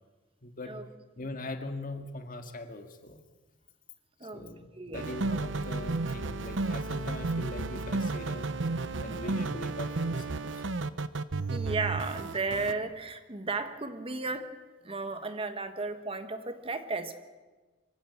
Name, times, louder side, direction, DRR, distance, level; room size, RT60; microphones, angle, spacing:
voice 1, 0.4-0.7 1.2-3.2 4.3-8.5 9.0-10.6, left 2 dB, 45° left, 6 dB, 2.0 m, -41 dB
voice 2, 4.7-5.1 9.1-9.4 11.5-14.5 14.8-17.2, right 3 dB, 30° right, 9 dB, 1.4 m, -34 dB
sound 1, 4.9-12.7, right 3 dB, 80° right, 0.9 m, -32 dB
25.5 x 15.5 x 8.1 m, 1.3 s
head